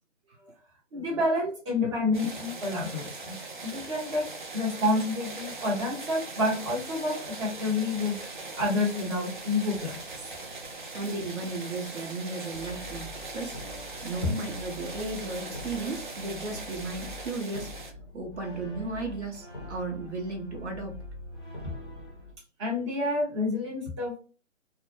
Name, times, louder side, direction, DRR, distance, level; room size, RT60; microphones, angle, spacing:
voice 1, 0.9-3.3 3.6-4.3 4.5-8.2 8.5-10.1 22.6-24.2, left 2 dB, 25° right, -3 dB, 0.8 m, -29 dB
sound 1, 2.1-17.9, right 3 dB, 40° right, 0.4 m, -40 dB
voice 2, 10.9-13.6 14.0-17.7 18.1-21.0, right 2 dB, 65° right, 1 dB, 0.9 m, -35 dB
Brass instrument, 12.5-22.3, left 1 dB, 20° left, 0.6 m, -44 dB
2.1 x 2.0 x 3.0 m, 0.35 s
figure-of-eight pair, 145°, 37 cm